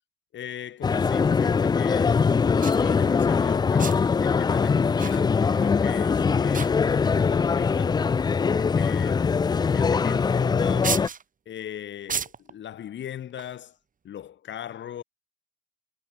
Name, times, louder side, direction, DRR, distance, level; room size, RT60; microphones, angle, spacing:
voice 1, 0.3-8.1 8.4-9.5 9.7-11.1 11.5-13.8 14.0-15.0, left 10 dB, 65° left, 4.5 m, -39 dB
sound 1, 0.8-11.1, left 5 dB, 20° left, 0.3 m, -22 dB
sound 2, 2.6-2.9 3.8-4.2 5.0-5.7 5.9-6.2 6.5-7.2 8.0-8.1 9.3-9.5 9.9-10.0 10.8-11.2 12.1-12.5 13.3-13.6, right 6 dB, 40° right, 3.1 m, -33 dB
cardioid pair, 90°, 20 cm